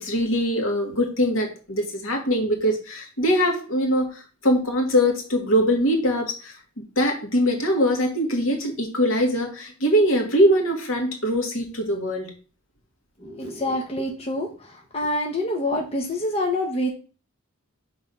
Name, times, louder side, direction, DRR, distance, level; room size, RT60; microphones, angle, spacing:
voice 1, 0.0-6.5 7.0-12.3, equal, 70° left, 3 dB, 1.9 m, -22 dB
voice 2, 13.2-14.5 14.9-16.9, left 1 dB, 30° left, 1 dB, 1.0 m, -26 dB
6.1 x 4.0 x 5.3 m, 0.35 s
head